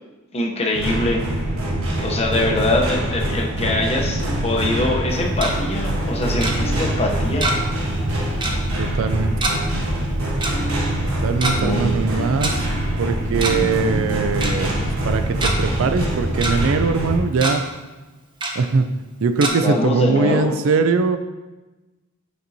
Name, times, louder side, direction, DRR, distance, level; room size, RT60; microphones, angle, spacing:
voice 1, 0.3-1.2 2.0-7.5 11.6-11.9 19.6-20.5, left 2 dB, 30° left, 1 dB, 0.7 m, -23 dB
sound 1, 0.7-17.2, right 1 dB, 90° right, 1.2 m, -24 dB
Tick-tock, 5.1-5.5 6.4-6.5 7.4-7.8 8.0-8.1 8.4-8.6 9.4-9.5 10.4-10.5 11.3-11.5 12.4-12.5 13.2-13.7 14.0-14.1 14.4-14.5 15.1-15.5 16.0-16.5 16.9-17.1 17.4-17.5 18.4-18.5 19.4-19.5, right 2 dB, 25° right, 0.7 m, -24 dB
voice 2, 8.8-9.3 11.2-12.7 13.0-14.7 15.0-17.6 18.6-18.9 19.2-21.2, right 4 dB, 70° right, 9 dB, 0.4 m, -21 dB
8.0 x 4.4 x 2.7 m, 1.1 s
head